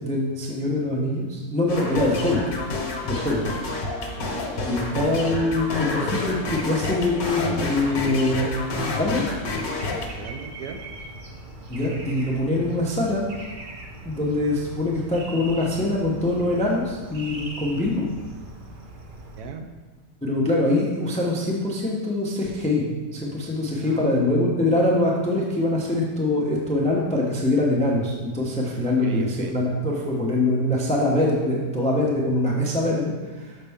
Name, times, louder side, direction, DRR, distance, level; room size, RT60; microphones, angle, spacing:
voice 1, 0.0-2.4 3.0-3.4 4.6-9.2 11.7-13.2 14.0-18.1 20.2-22.8 23.1-33.6, left 2 dB, 10° left, -2 dB, 0.3 m, -23 dB
sound 1, 1.7-10.1, left 2 dB, 65° left, 1.4 m, -29 dB
voice 2, 3.1-3.5 4.1-4.7 10.1-10.8 19.4-19.7 23.8-24.4 28.8-29.5, right 5 dB, 75° right, 6 dB, 1.1 m, -38 dB
sound 2, 9.6-19.4, right 2 dB, 55° right, 0.5 m, -40 dB
6.5 x 5.5 x 3.5 m, 1.3 s
omnidirectional pair, 1.8 m